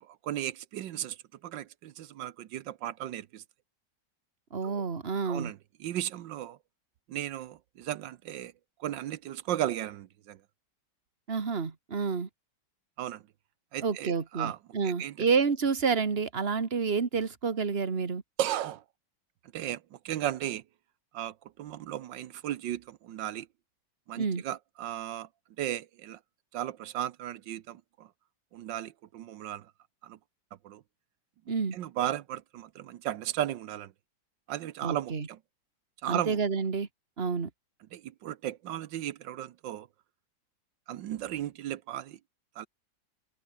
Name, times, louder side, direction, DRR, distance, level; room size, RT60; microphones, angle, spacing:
voice 1, 0.0-3.4 4.6-4.8 5.2-6.6 7.1-8.5 8.8-10.4 13.0-13.2 13.7-14.6 14.8-15.3 18.4-18.8 19.5-20.6 21.1-23.5 24.1-25.3 25.6-26.2 26.5-28.1 28.5-29.7 30.0-30.2 30.6-30.8 31.7-33.9 34.5-35.4 36.0-36.4 37.9-39.9 40.9-42.2 42.5-42.7, right 12 dB, 70° right, 1.4 m, -35 dB
voice 2, 4.5-5.5 11.3-12.3 13.8-18.2 24.2-24.4 31.5-31.8 34.8-35.3 36.1-36.9 37.2-37.5, right 5 dB, 30° right, 1.9 m, -29 dB
omnidirectional pair, 2.1 m